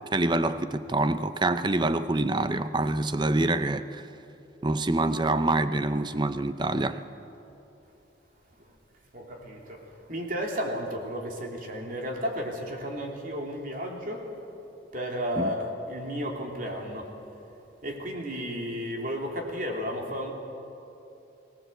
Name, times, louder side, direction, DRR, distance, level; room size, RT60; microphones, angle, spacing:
voice 1, 0.1-4.1 4.6-7.0 15.4-15.5, right 2 dB, 25° right, 0.6 m, -26 dB
voice 2, 9.1-9.8 10.1-14.3 14.9-17.1 17.8-20.3, equal, 45° right, 3.1 m, -33 dB
23.0 x 18.5 x 7.9 m
head